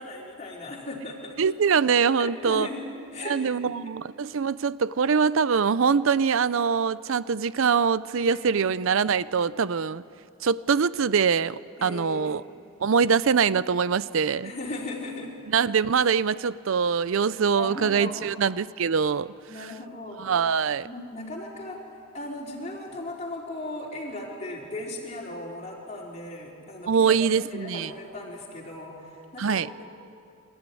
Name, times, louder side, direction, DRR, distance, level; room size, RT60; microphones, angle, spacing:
voice 1, 0.0-1.4 2.2-3.9 8.1-8.6 11.8-12.5 14.4-15.4 17.6-18.4 19.5-20.3 20.8-21.8 22.1-29.6, left 2 dB, 30° left, -3 dB, 4.0 m, -37 dB
voice 2, 1.4-2.7 3.3-10.0 10.4-12.4 12.8-14.5 15.5-19.3 20.2-20.9 26.9-27.9 29.4-29.7, right 6 dB, 65° right, 17 dB, 0.5 m, -23 dB
26.0 x 14.0 x 9.9 m, 2.5 s
head